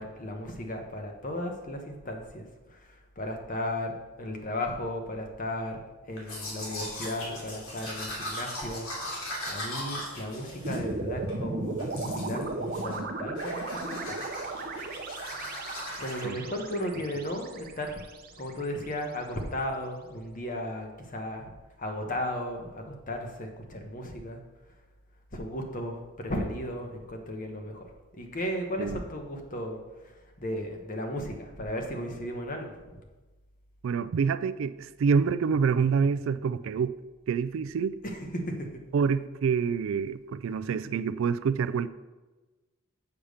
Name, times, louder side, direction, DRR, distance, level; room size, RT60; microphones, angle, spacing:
voice 1, 0.0-2.4 2.7-5.8 6.1-8.9 9.5-14.3 14.6-14.8 16.0-18.0 18.4-21.5 21.8-24.4 25.3-27.9 28.1-29.8 30.4-32.8 38.0-38.7, left 1 dB, 40° left, 3 dB, 1.1 m, -35 dB
Domestic sounds home sounds, 6.2-11.4 11.8-12.4 12.7-13.1 13.4-16.2, left 1 dB, 80° left, 2.8 m, -39 dB
sound 1, 10.6-18.9, right 2 dB, 45° right, 0.7 m, -36 dB
voice 2, 33.8-36.9 37.3-38.0 38.9-41.9, right 6 dB, 65° right, 14 dB, 0.3 m, -27 dB
7.1 x 5.1 x 6.5 m, 1.2 s
head